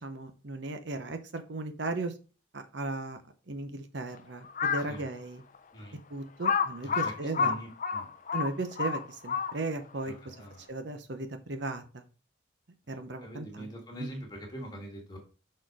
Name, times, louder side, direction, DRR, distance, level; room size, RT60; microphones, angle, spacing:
voice 1, 0.0-2.1 2.5-3.2 3.5-5.4 6.1-7.6 8.3-10.3 10.7-12.0 12.9-13.7 14.0-14.1, right 2 dB, 60° right, 8 dB, 0.8 m, -36 dB
Crow, 4.5-5.0 5.5-5.6 6.4-9.8, left 6 dB, 40° left, 0.4 m, -29 dB
voice 2, 6.8-8.1 10.0-10.7 13.2-15.2, right 1 dB, 20° left, 0 dB, 2.0 m, -43 dB
6.3 x 4.3 x 4.8 m, 0.34 s
head